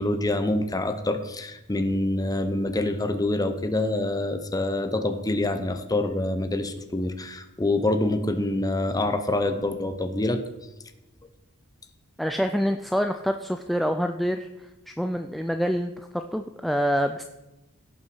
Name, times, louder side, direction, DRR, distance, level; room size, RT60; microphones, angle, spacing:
voice 1, 0.0-10.4, left 2 dB, 15° left, 8 dB, 0.8 m, -26 dB
voice 2, 12.2-14.5 14.9-17.2, equal, ahead, 6 dB, 0.3 m, -26 dB
16.5 x 5.8 x 4.7 m, 1.0 s
head